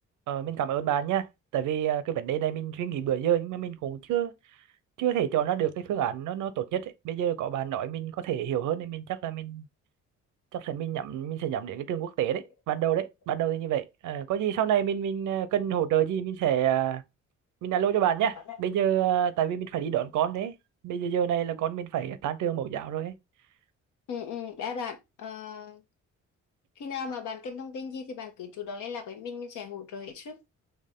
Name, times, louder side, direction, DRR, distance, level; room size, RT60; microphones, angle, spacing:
voice 1, 0.3-1.3 1.5-4.3 5.0-9.7 10.5-17.0 17.6-20.5 20.8-23.1, right 10 dB, 80° right, 0.7 m, -28 dB
voice 2, 24.1-25.8 26.8-30.4, left 6 dB, 80° left, 1.2 m, -37 dB
4.5 x 3.0 x 3.6 m
cardioid pair, 90°, 30 cm